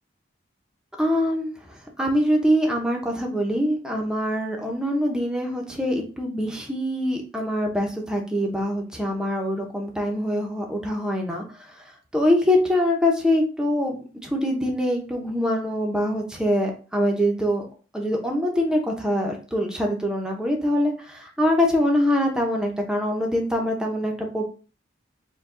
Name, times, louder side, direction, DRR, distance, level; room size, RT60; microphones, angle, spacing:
voice 1, 1.0-11.8 12.1-17.7 17.9-24.5, equal, 5° right, 1 dB, 0.8 m, -24 dB
4.8 x 2.3 x 3.7 m, 0.36 s
head